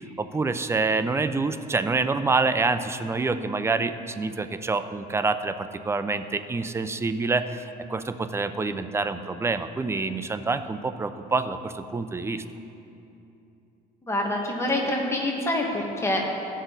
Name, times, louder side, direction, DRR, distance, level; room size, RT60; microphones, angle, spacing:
voice 1, 0.2-7.6 7.9-12.4, right 3 dB, 15° right, 10 dB, 0.5 m, -27 dB
voice 2, 14.1-16.2, left 1 dB, 15° left, -1 dB, 1.7 m, -26 dB
15.5 x 6.2 x 4.0 m, 2.7 s
cardioid pair, 110°, 17 cm